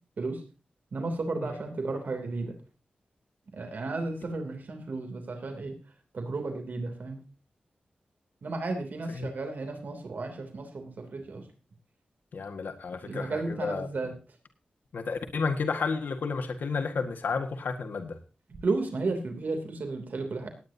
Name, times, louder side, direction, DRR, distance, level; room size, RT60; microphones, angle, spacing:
voice 1, 0.9-2.5 3.5-5.8 6.1-7.2 8.4-11.4 13.1-14.1 18.6-20.5, right 3 dB, 70° right, 6 dB, 2.9 m, -33 dB
voice 2, 12.3-13.9 14.9-18.2, left 4 dB, 85° left, 5 dB, 1.6 m, -31 dB
18.5 x 9.9 x 2.8 m, 0.34 s
wide cardioid pair, 105°, 3 cm